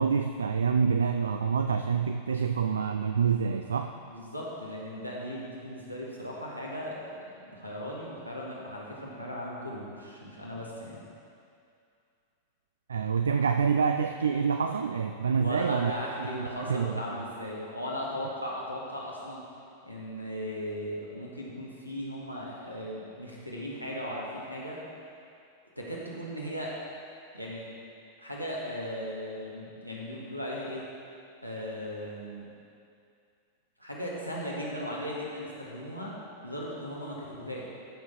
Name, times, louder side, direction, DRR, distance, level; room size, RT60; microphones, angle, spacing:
voice 1, 0.0-3.9 12.9-15.9 16.2-17.0, right 6 dB, 70° right, 7 dB, 0.4 m, -27 dB
voice 2, 4.1-11.0 15.3-19.4 19.8-24.8 25.8-26.7 27.3-27.7 28.2-30.9 31.4-32.4 33.8-36.1 36.4-37.7, equal, 90° right, -4 dB, 2.0 m, -37 dB
13.5 x 6.9 x 4.6 m, 2.5 s
figure-of-eight pair, 90°, 0 cm